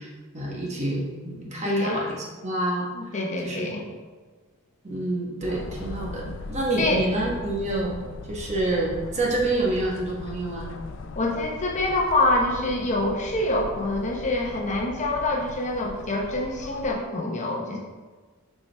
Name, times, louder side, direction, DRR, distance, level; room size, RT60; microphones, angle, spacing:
voice 1, 0.0-2.2 2.4-2.9 3.4-3.9 4.8-8.0 8.3-10.7, right 2 dB, 35° right, -3 dB, 1.1 m, -28 dB
voice 2, 1.6-2.0 2.9-3.8 6.8-7.1 11.2-17.8, left 2 dB, 35° left, 0 dB, 0.8 m, -26 dB
sound 1, 5.4-16.9, left 3 dB, 60° left, 0.4 m, -39 dB
7.0 x 4.7 x 3.3 m, 1.4 s
head